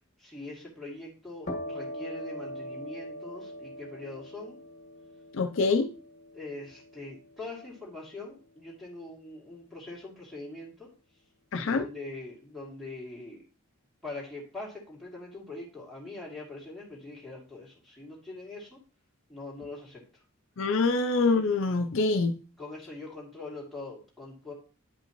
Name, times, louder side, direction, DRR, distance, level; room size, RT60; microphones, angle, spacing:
voice 1, 0.2-4.6 5.6-5.8 6.3-10.9 11.6-13.4 14.0-18.8 19.3-20.0 22.6-24.5, left 2 dB, ahead, 2.5 m, -42 dB
sound 1, 1.4-8.9, equal, 35° left, 1.5 m, -42 dB
voice 2, 5.3-5.9 11.5-11.9 20.6-22.3, left 3 dB, 60° left, 0.5 m, -25 dB
10.0 x 5.4 x 3.0 m
head